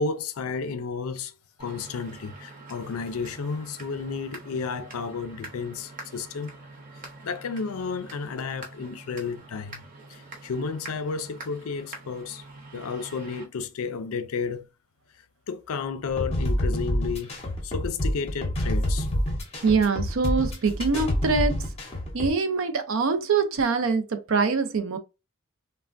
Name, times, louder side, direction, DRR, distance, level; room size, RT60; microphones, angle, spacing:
voice 1, 0.0-1.3 1.6-6.5 7.2-9.8 10.1-12.4 12.7-14.7 15.5-19.1, left 5 dB, 75° left, 0.4 m, -32 dB
sound 1, 1.6-13.4, right 2 dB, 35° right, 0.7 m, -45 dB
sound 2, 16.1-22.3, equal, 25° left, 0.7 m, -27 dB
voice 2, 19.6-21.7 22.1-25.0, right 4 dB, 65° right, 0.5 m, -24 dB
3.2 x 2.1 x 2.4 m
head